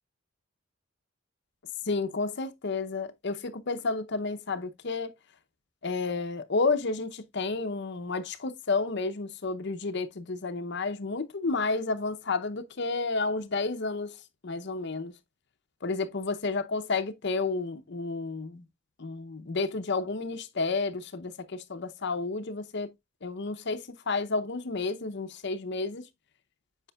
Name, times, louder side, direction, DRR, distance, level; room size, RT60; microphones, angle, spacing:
voice 1, 1.9-5.1 5.8-14.2 14.4-15.1 15.8-18.6 19.0-22.9 23.2-26.0, left 3 dB, 55° left, 0.7 m, -31 dB
8.2 x 5.0 x 2.3 m
head